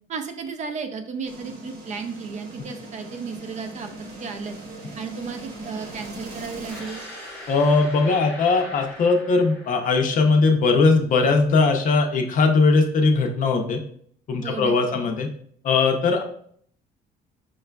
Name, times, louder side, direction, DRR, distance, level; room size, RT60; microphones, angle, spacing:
voice 1, 0.1-3.9 4.2-4.6 5.0-7.0 14.4-15.1, right 5 dB, 45° right, 7 dB, 0.4 m, -34 dB
sound 1, 1.3-8.2, right 2 dB, 70° right, 0.9 m, -40 dB
sound 2, 6.7-10.6, left 1 dB, 10° left, 0.8 m, -41 dB
voice 2, 7.5-13.8 14.3-15.3 15.6-16.2, left 4 dB, 50° left, 4 dB, 0.5 m, -19 dB
4.7 x 2.3 x 2.2 m, 0.62 s
cardioid pair, 110°, 17 cm